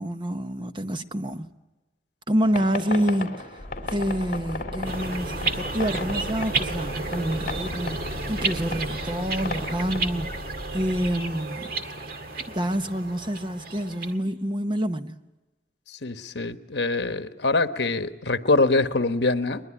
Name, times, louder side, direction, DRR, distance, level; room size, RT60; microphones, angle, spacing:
voice 1, 0.0-1.5 2.3-10.3 10.7-11.7 12.5-15.2, equal, 25° right, 0.9 m, -27 dB
sound 1, 2.4-10.0, left 3 dB, 45° left, 3.5 m, -36 dB
sound 2, 3.6-11.2, equal, 5° left, 5.7 m, -39 dB
sound 3, 4.8-14.2, right 3 dB, 55° right, 2.0 m, -32 dB
voice 2, 15.9-19.6, left 3 dB, 70° left, 1.3 m, -24 dB
22.0 x 21.5 x 9.9 m
head